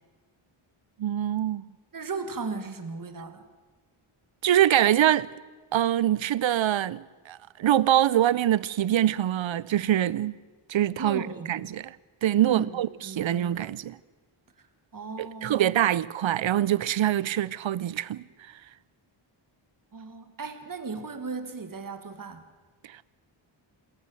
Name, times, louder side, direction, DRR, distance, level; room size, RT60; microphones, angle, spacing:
voice 1, 1.0-1.7 4.4-5.3 5.7-10.3 10.7-12.0 12.2-14.0 15.2-18.2, right 11 dB, 65° right, 0.7 m, -24 dB
voice 2, 1.9-3.5 11.0-11.5 12.4-13.7 14.9-15.6 19.9-22.4, right 4 dB, 40° right, 1.9 m, -36 dB
26.5 x 14.0 x 7.8 m
wide cardioid pair, 155°, 50 cm